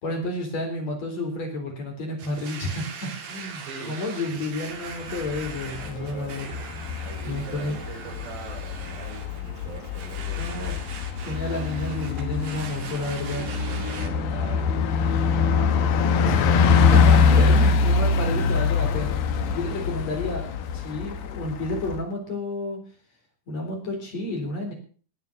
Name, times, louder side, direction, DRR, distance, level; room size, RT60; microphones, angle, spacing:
voice 1, 0.0-6.5 7.2-7.8 10.3-10.7 11.2-13.4 16.1-19.2 19.5-20.5 20.7-22.8 23.5-24.7, left 1 dB, 40° left, 2 dB, 4.7 m, -31 dB
Domestic sounds home sounds, 2.2-14.1, right 6 dB, 55° right, 3.4 m, -41 dB
voice 2, 3.6-4.4 5.5-6.6 7.0-10.8 13.2-14.8 15.2-16.3, right 4 dB, 85° right, 0 dB, 7.7 m, -42 dB
Bus, 4.9-22.0, left 5 dB, 65° left, 2.9 m, -23 dB
19.5 x 7.5 x 6.6 m, 0.42 s
omnidirectional pair, 4.8 m